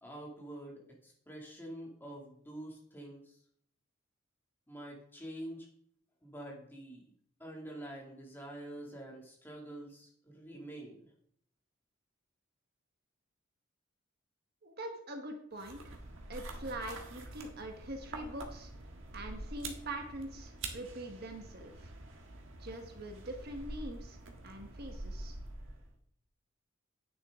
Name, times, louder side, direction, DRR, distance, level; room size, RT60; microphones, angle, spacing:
voice 1, 0.0-3.4 4.7-5.7 6.2-7.1 7.4-11.1, right 1 dB, 10° left, -2 dB, 2.4 m, -46 dB
voice 2, 14.6-16.0 16.3-18.7 19.1-21.9 22.6-24.2 24.4-25.4, right 1 dB, 50° right, 4 dB, 1.3 m, -43 dB
sound 1, 15.6-25.9, right 2 dB, 70° right, 1.5 m, -46 dB
10.0 x 9.2 x 3.7 m, 0.63 s
head